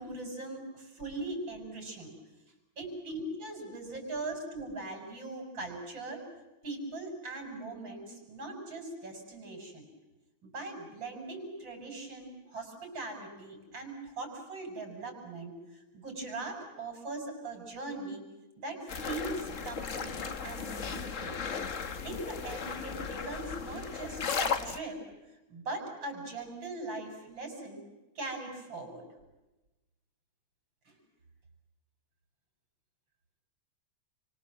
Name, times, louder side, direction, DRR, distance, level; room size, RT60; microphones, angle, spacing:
voice 1, 0.0-2.1 2.8-6.2 6.6-9.9 10.4-15.6 15.9-18.2 18.6-21.4 22.0-25.0 25.5-27.8 28.2-29.1 30.9-31.0, right 2 dB, 35° right, 4 dB, 7.1 m, -40 dB
sound 1, 18.9-24.8, left 6 dB, 75° left, 0.7 m, -36 dB
30.0 x 24.5 x 7.6 m, 1.0 s
omnidirectional pair, 3.4 m